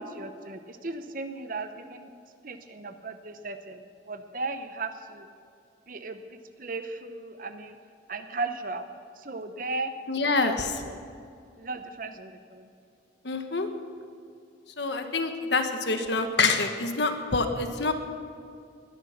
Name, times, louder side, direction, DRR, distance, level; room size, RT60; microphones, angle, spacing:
voice 1, 0.0-2.1 2.4-5.3 5.9-7.8 8.1-8.9 9.2-9.9 10.2-11.0 11.6-12.7, right 3 dB, 45° right, 8 dB, 0.9 m, -36 dB
voice 2, 10.1-10.6 13.2-13.7 14.8-17.9, left 3 dB, 65° left, 6 dB, 1.4 m, -26 dB
20.5 x 11.0 x 5.9 m, 2.4 s
head